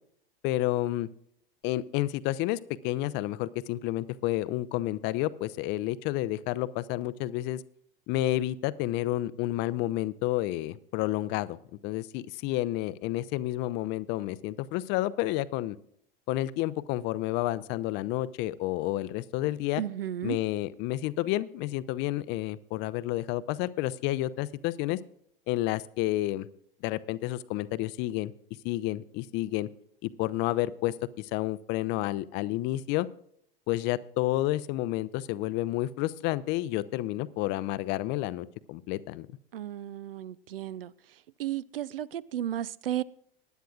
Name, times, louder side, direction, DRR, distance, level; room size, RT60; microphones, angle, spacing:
voice 1, 0.4-1.1 1.6-7.6 8.1-11.6 11.8-15.8 16.3-19.8 20.2-25.0 25.5-26.5 26.8-28.3 28.6-29.7 30.0-33.1 33.7-39.3, left 16 dB, 35° left, 0.6 m, -30 dB
voice 2, 19.8-20.4 39.5-40.9 41.4-43.0, right 12 dB, 70° right, 0.5 m, -34 dB
20.0 x 10.0 x 2.4 m
figure-of-eight pair, 85°, 29 cm